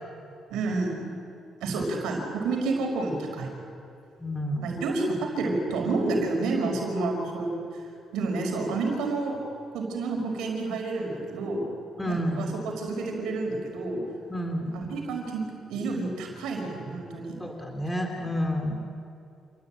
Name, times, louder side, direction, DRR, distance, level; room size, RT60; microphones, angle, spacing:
voice 1, 0.5-1.1 1.6-3.5 4.6-7.8 8.1-9.4 9.7-11.6 12.0-14.0 14.7-15.4 15.7-17.3, right 3 dB, 90° right, 2 dB, 5.2 m, -29 dB
voice 2, 4.2-4.7 12.0-12.5 14.3-14.8 17.4-18.8, equal, 15° left, 3 dB, 3.2 m, -30 dB
28.0 x 18.0 x 9.1 m, 2.4 s
cardioid pair, 90°, 0 cm